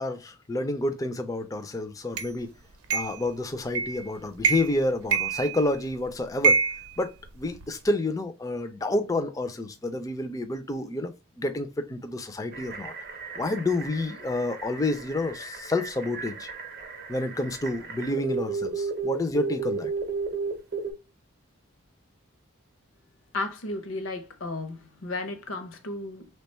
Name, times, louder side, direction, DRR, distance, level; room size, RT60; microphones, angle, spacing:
voice 1, 0.0-2.5 2.9-6.6 7.0-12.9 13.4-16.5 17.1-19.9, left 2 dB, 15° left, 0.3 m, -29 dB
sound 1, 2.2-2.3 2.9-3.2 3.7-4.0 4.4-4.8 5.1-5.9 6.4-7.7, right 5 dB, 85° right, 0.6 m, -26 dB
sound 2, 12.5-20.9, right 4 dB, 45° right, 0.6 m, -34 dB
voice 2, 23.3-26.3, left 2 dB, 65° left, 0.6 m, -34 dB
3.3 x 2.2 x 4.2 m
head